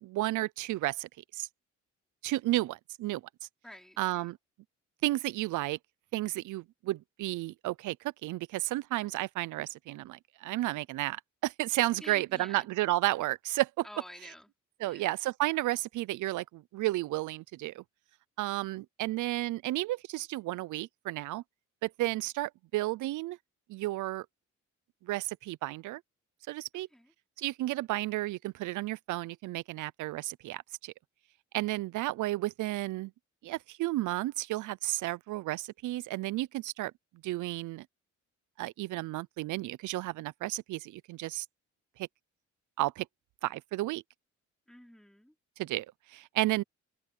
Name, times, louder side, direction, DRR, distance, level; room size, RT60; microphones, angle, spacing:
voice 1, 0.0-1.5 2.2-3.2 4.0-4.4 5.0-5.8 6.1-8.0 8.2-13.8 14.8-17.8 18.4-21.4 21.8-23.4 23.7-24.3 25.0-26.0 26.5-26.9 27.4-30.9 31.5-33.1 33.4-36.9 37.2-37.9 38.6-41.5 42.0-42.1 42.8-43.1 43.4-44.0 45.6-46.6, right 17 dB, 80° right, 0.6 m, -32 dB
voice 2, 3.6-4.3 12.0-12.7 13.8-14.5 14.8-15.1 26.9-27.1 44.7-45.3, left 1 dB, ahead, 3.1 m, -50 dB
open air
cardioid pair, 90°, 30 cm